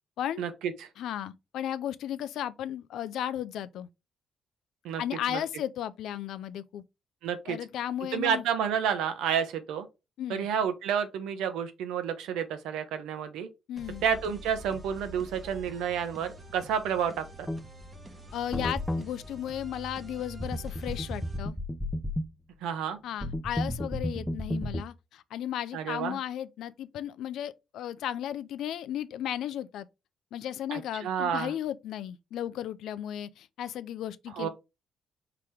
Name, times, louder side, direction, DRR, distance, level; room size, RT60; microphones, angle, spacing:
voice 1, 0.4-0.9 4.8-5.0 5.3-5.4 7.2-7.6 8.1-9.9 10.3-13.5 14.0-17.5 22.6-23.0 25.7-26.2 30.7-31.5 34.3-34.5, right 8 dB, 90° right, 0.8 m, -30 dB
voice 2, 1.0-3.9 5.0-6.8 7.5-8.4 10.2-10.5 13.7-14.0 18.3-21.6 23.0-29.9 30.3-34.5, left 11 dB, 80° left, 0.4 m, -35 dB
sound 1, 13.8-21.4, right 1 dB, 25° right, 1.0 m, -46 dB
sound 2, 17.5-17.6 18.5-19.1 20.4-22.3 23.2-24.8, left 1 dB, 5° left, 0.7 m, -32 dB
4.7 x 2.9 x 3.4 m
cardioid pair, 90°, 0 cm